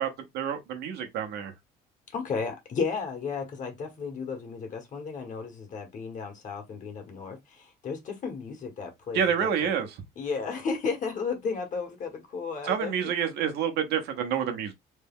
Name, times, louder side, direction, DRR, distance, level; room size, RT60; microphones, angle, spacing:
voice 1, 0.0-1.5 9.1-9.9 12.6-14.7, right 8 dB, 75° right, 1.0 m, -28 dB
voice 2, 2.1-9.7 10.2-13.1, left 5 dB, 50° left, 1.4 m, -34 dB
3.3 x 2.2 x 3.6 m
cardioid pair, 110°, 17 cm